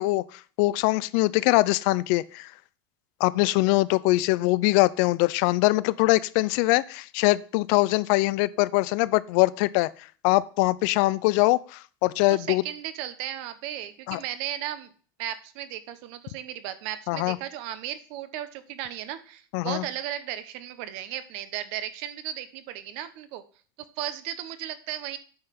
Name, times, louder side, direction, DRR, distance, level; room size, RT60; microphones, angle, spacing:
voice 1, 0.0-2.5 3.2-9.9 10.2-12.6 14.1-14.2 17.1-17.4 19.5-19.8, left 20 dB, 55° left, 18 dB, 0.5 m, -23 dB
voice 2, 12.3-14.9 15.2-23.4 23.8-25.2, right 11 dB, 55° right, 12 dB, 1.1 m, -35 dB
8.7 x 5.8 x 5.9 m, 0.41 s
supercardioid pair, 160°, 12 cm